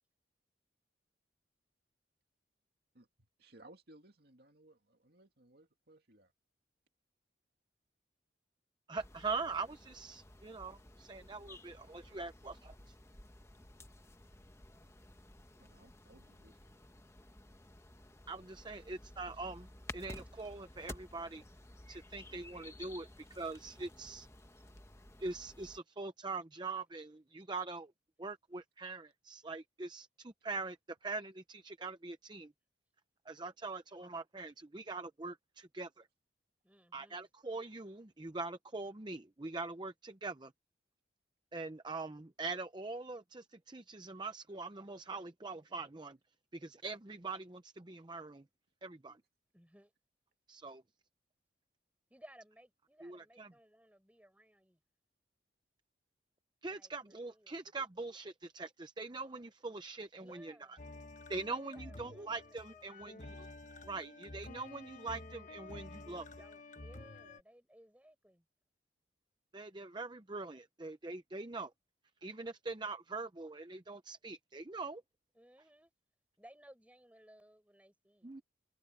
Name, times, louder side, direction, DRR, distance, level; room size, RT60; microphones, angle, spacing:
voice 1, 3.4-6.3 15.6-16.7 19.2-19.6, right 1 dB, 55° right, 2.3 m, -61 dB
voice 2, 8.9-12.9 18.3-19.7 19.9-21.4 21.9-24.3 25.2-27.9 28.2-32.5 33.3-36.1 36.9-40.5 41.5-46.2 46.5-48.4 48.8-49.2 50.5-50.8 53.0-53.5 56.6-60.5 61.3-63.5 63.8-66.3 69.5-71.7 72.2-75.0 78.2-78.4, right 3 dB, 25° right, 0.7 m, -43 dB
sound 1, 9.0-25.8, left 1 dB, 15° left, 1.0 m, -54 dB
voice 3, 36.6-37.3 49.5-49.9 52.1-54.8 56.7-57.7 60.2-60.8 61.5-63.4 66.0-68.5 75.3-75.9 76.4-78.3, equal, 10° right, 6.1 m, -61 dB
sound 2, 60.8-67.4, left 2 dB, 40° left, 1.2 m, -51 dB
open air
head